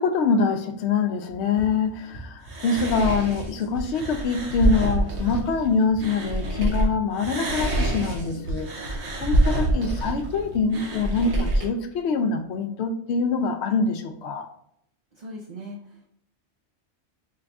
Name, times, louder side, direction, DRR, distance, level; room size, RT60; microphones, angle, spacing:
voice 1, 0.0-8.7 9.2-14.5, left 4 dB, 75° left, 6 dB, 0.8 m, -24 dB
Run, 1.3-10.7, right 1 dB, 45° left, 0.9 m, -42 dB
sound 1, 2.5-6.8 7.2-11.7, right 1 dB, 75° right, 1.2 m, -26 dB
voice 2, 15.1-16.1, equal, 50° right, -1 dB, 0.6 m, -39 dB
4.7 x 2.5 x 3.3 m, 0.72 s
omnidirectional pair, 1.1 m